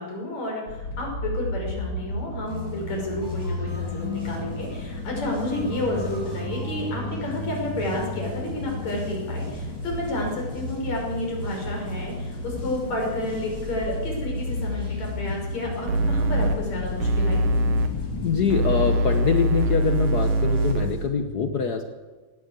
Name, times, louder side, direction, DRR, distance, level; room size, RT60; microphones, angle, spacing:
voice 1, 0.0-17.4, left 1 dB, 60° left, 0 dB, 7.1 m, -31 dB
sound 1, 0.7-18.9, left 2 dB, 45° left, 2.6 m, -32 dB
sound 2, 2.4-21.1, right 1 dB, 5° right, 6.5 m, -46 dB
sound 3, 15.9-16.5 17.0-17.9 18.5-20.9, right 1 dB, 85° right, 3.0 m, -22 dB
voice 2, 18.2-21.8, left 6 dB, 80° left, 6 dB, 0.8 m, -24 dB
19.0 x 17.0 x 8.2 m, 1.3 s
omnidirectional pair, 3.5 m